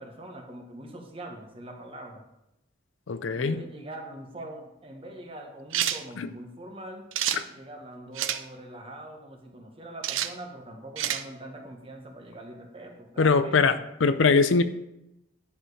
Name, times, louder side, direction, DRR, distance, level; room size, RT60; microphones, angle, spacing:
voice 1, 0.0-2.2 3.3-7.1 7.5-13.8, right 1 dB, 30° right, 2 dB, 1.3 m, -43 dB
voice 2, 3.1-3.6 6.2-6.3 7.3-7.4 13.2-13.8 14.0-14.6, left 4 dB, 75° left, 12 dB, 0.5 m, -21 dB
sound 1, 5.7-6.0 7.1-7.4 8.2-8.4 10.0-10.3 11.0-11.2, right 11 dB, 80° right, 0.5 m, -28 dB
10.0 x 4.8 x 4.9 m, 0.87 s
head